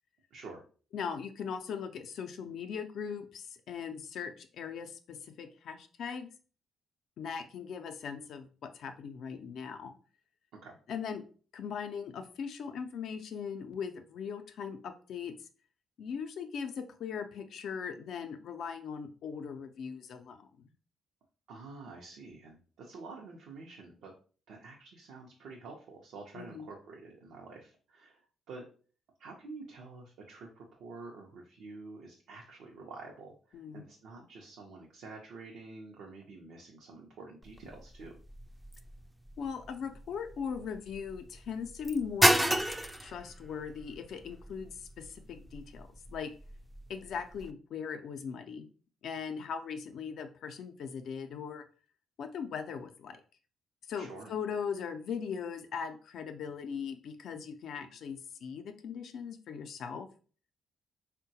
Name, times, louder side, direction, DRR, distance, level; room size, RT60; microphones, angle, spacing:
voice 1, 0.3-0.6 10.6-10.8 21.5-24.1 24.5-28.7 29.2-38.1 53.9-54.3, right 3 dB, 75° right, -1 dB, 0.5 m, -48 dB
voice 2, 0.9-6.3 7.2-9.9 10.9-11.2 11.5-15.3 16.0-20.7 26.3-26.7 33.5-33.8 39.4-42.6 43.0-46.3 46.9-48.7 49.0-51.6 52.2-53.2 53.9-60.1, left 6 dB, 70° left, 7 dB, 0.4 m, -39 dB
sound 1, 37.4-47.5, right 1 dB, 10° right, 0.3 m, -33 dB
3.7 x 2.1 x 2.7 m, 0.40 s
supercardioid pair, 55°, 0 cm